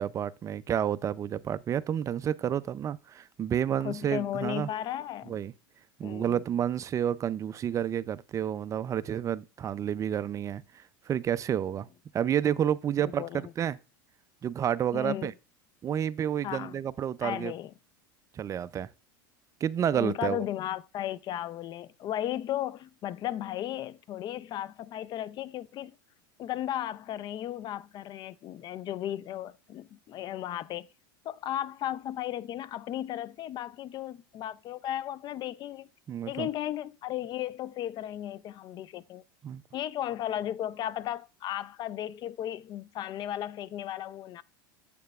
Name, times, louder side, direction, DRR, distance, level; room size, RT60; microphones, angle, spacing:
voice 1, 0.0-4.7 5.3-5.5 6.0-11.9 12.1-13.8 14.4-15.3 15.8-17.5 18.4-18.9 19.6-20.4 36.1-36.5 39.4-39.6, right 9 dB, 30° right, 0.4 m, -30 dB
voice 2, 3.8-5.4 6.0-6.4 13.0-13.5 14.9-15.3 16.4-16.8 17.2-17.7 19.9-25.9 26.4-30.9 31.3-35.9 36.3-39.2 39.7-44.4, left 12 dB, 40° left, 0.4 m, -35 dB
7.5 x 6.6 x 2.3 m
supercardioid pair, 105°, 11 cm